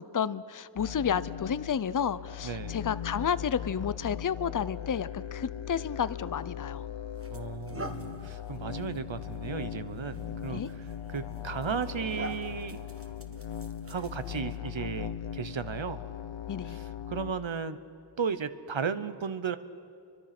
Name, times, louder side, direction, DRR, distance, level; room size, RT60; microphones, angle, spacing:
voice 1, 0.0-6.9 10.5-10.7 16.5-16.8, left 7 dB, 45° left, 16 dB, 0.6 m, -31 dB
sound 1, 0.8-17.3, left 9 dB, 80° left, 0.9 m, -39 dB
voice 2, 2.4-2.8 7.3-12.8 13.9-16.0 16.6-17.8 18.2-19.6, right 6 dB, 80° right, 12 dB, 1.0 m, -35 dB
sound 2, 6.4-6.6 7.2-14.6, right 1 dB, 30° right, 1.5 m, -46 dB
29.0 x 24.0 x 6.0 m, 2.5 s
wide cardioid pair, 65°, 45 cm